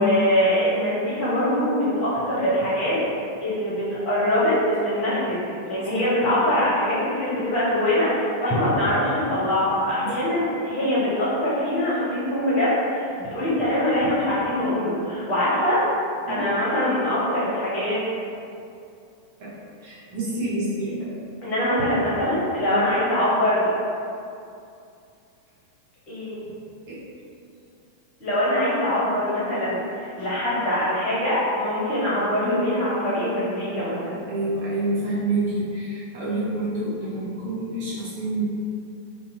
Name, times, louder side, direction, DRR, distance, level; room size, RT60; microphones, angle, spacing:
voice 1, 0.0-3.0 3.4-5.3 5.6-15.8 16.3-18.0 21.4-23.7 26.1-26.4 28.2-34.2, left 1 dB, 40° left, -9 dB, 1.0 m, -23 dB
voice 2, 19.8-21.0 22.6-22.8 26.9-27.0 29.6-29.7 30.2-30.3 34.3-38.4, right 1 dB, 50° right, -8 dB, 0.8 m, -27 dB
2.7 x 2.2 x 2.6 m, 2.5 s
figure-of-eight pair, 90°, 0 cm